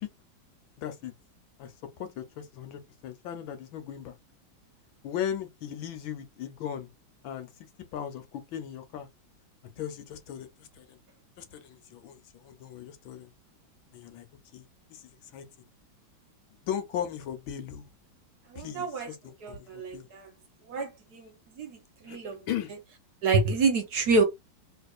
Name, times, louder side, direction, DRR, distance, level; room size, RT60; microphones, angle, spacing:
voice 1, 0.8-1.1 1.6-4.2 5.0-6.9 7.2-7.5 7.9-9.1 9.8-11.0 11.4-13.3 13.9-14.3 14.5-15.4 16.6-17.9 18.6-20.1 22.1-22.2 22.5-22.7, left 9 dB, 75° left, 1.6 m, -37 dB
voice 2, 18.5-19.1 19.4-20.3 20.7-21.3 21.6-21.8 22.0-22.4 23.2-24.2, right 3 dB, 60° right, 1.3 m, -27 dB
3.3 x 3.2 x 2.4 m
omnidirectional pair, 2.2 m